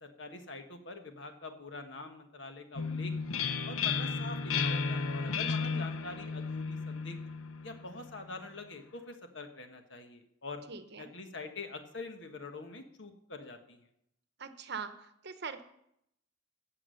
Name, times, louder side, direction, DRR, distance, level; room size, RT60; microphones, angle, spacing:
voice 1, 0.0-3.1 3.7-7.2 7.6-10.6 11.0-13.8, left 3 dB, 60° left, 6 dB, 1.4 m, -45 dB
sound 1, 2.8-8.3, left 5 dB, 85° left, 0.7 m, -34 dB
voice 2, 5.4-5.9 10.7-11.1 14.4-15.6, right 5 dB, 55° right, 10 dB, 0.9 m, -42 dB
16.5 x 6.1 x 6.4 m, 0.77 s
head